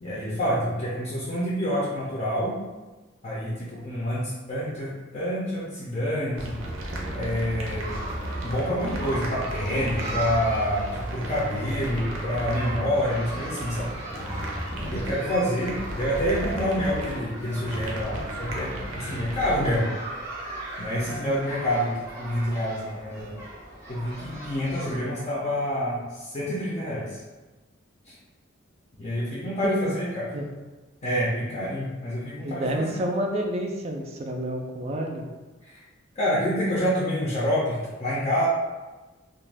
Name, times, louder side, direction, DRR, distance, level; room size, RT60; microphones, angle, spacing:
voice 1, 0.0-2.6 3.2-6.6 7.1-8.0 8.4-13.9 14.7-19.9 20.8-23.3 23.9-27.2 28.1-28.2 29.0-30.3 31.0-32.9 35.6-35.8 36.2-38.5, equal, 35° left, -6 dB, 0.5 m, -27 dB
sound 1, 6.3-19.8, right 1 dB, 85° right, 0.6 m, -34 dB
sound 2, 7.8-25.0, right 1 dB, 15° right, 0.7 m, -38 dB
voice 2, 29.6-30.0 30.3-30.5 32.4-35.2, right 1 dB, 30° right, 2 dB, 0.3 m, -29 dB
2.4 x 2.2 x 3.3 m, 1.2 s
head